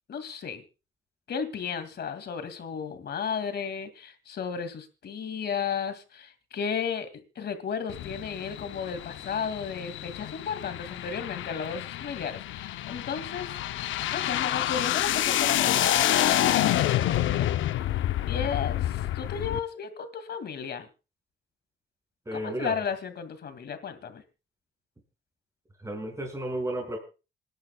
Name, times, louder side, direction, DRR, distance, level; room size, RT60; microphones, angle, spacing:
voice 1, 0.1-0.6 1.3-13.6 14.1-17.5 18.3-20.9 22.3-24.2, left 6 dB, 55° left, 9 dB, 2.3 m, -34 dB
sound 1, 7.9-19.6, left 12 dB, 75° left, 0.7 m, -28 dB
voice 2, 22.3-22.7 25.8-27.0, right 1 dB, 15° right, 0 dB, 5.2 m, -32 dB
27.0 x 10.5 x 2.3 m, 0.31 s
cardioid pair, 90°, 20 cm